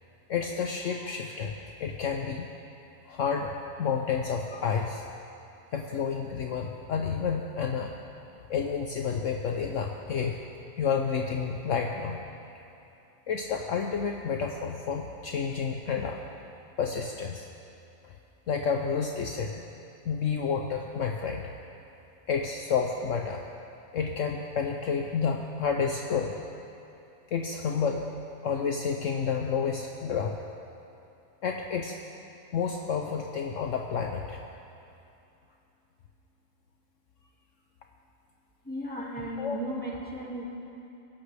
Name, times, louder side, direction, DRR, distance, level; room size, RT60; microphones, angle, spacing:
voice 1, 0.3-1.5 1.8-2.5 3.0-5.0 5.7-7.9 8.5-10.4 10.8-12.2 13.3-16.2 16.8-17.5 18.0-18.1 18.5-19.7 20.1-21.5 22.3-23.4 23.9-26.4 27.3-28.1 28.4-30.4 31.4-32.0 32.5-34.4 39.4-39.6, left 6 dB, 65° left, 2 dB, 1.0 m, -30 dB
voice 2, 38.6-40.4, equal, 5° left, -4 dB, 2.1 m, -35 dB
23.0 x 11.5 x 3.4 m, 2.8 s
omnidirectional pair, 1.6 m